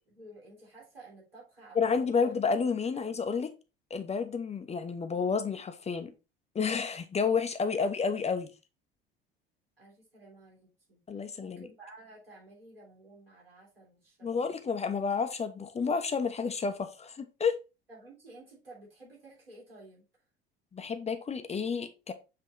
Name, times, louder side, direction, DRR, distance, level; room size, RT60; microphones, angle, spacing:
voice 1, 0.0-2.3 2.9-3.0 7.7-7.8 9.8-14.5 17.9-20.0, right 2 dB, 80° right, 3.4 m, -53 dB
voice 2, 1.7-3.5 3.9-6.1 6.5-8.5 11.1-11.7 14.2-17.6 20.7-22.1, left 5 dB, 20° left, 0.9 m, -30 dB
7.8 x 3.7 x 4.5 m
figure-of-eight pair, 65°, 29 cm